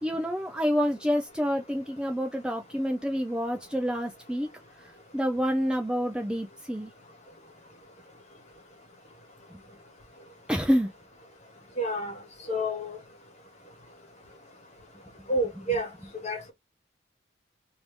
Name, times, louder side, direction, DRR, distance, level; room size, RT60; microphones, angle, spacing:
voice 1, 0.0-4.5 5.1-6.9 10.5-10.9, equal, 5° right, 0.4 m, -28 dB
voice 2, 11.8-12.1 12.5-13.0 15.3-15.9 16.2-16.5, right 1 dB, 35° left, 1.3 m, -28 dB
3.2 x 2.6 x 3.3 m
head